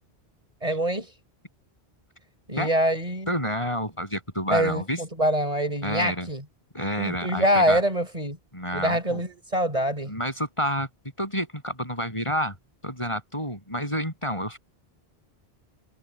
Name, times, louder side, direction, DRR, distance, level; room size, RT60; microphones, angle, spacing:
voice 1, 0.6-1.1 2.5-3.4 4.5-6.4 7.0-8.4 8.7-10.1, equal, 35° right, 5.5 m, -25 dB
voice 2, 3.3-5.0 5.8-6.3 6.7-7.8 8.5-9.2 10.1-10.9 11.2-12.5 12.8-14.6, equal, 30° left, 8.1 m, -29 dB
omnidirectional pair, 1.1 m